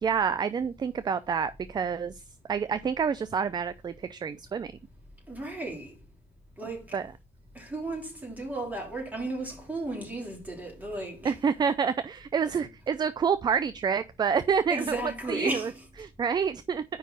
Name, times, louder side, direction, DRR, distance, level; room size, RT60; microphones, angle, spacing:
voice 1, 0.0-2.1 2.5-4.7 6.9-7.0 11.2-14.8 15.3-15.6 16.0-16.8, right 6 dB, 25° right, 0.4 m, -28 dB
voice 2, 5.3-5.9 6.6-7.0 7.5-11.4 14.7-15.9, right 2 dB, 10° right, 3.3 m, -34 dB
5.1 x 4.5 x 6.0 m
cardioid pair, 110°, 17 cm